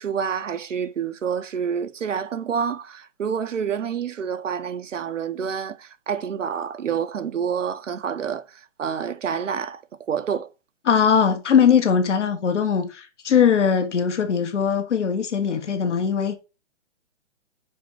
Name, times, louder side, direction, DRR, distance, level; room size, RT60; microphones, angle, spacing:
voice 1, 0.0-9.8 10.1-10.5, right 7 dB, 85° right, 1.0 m, -28 dB
voice 2, 10.9-16.4, left 7 dB, 75° left, 1.6 m, -20 dB
5.6 x 4.7 x 4.7 m
hypercardioid pair, 150°, 36 cm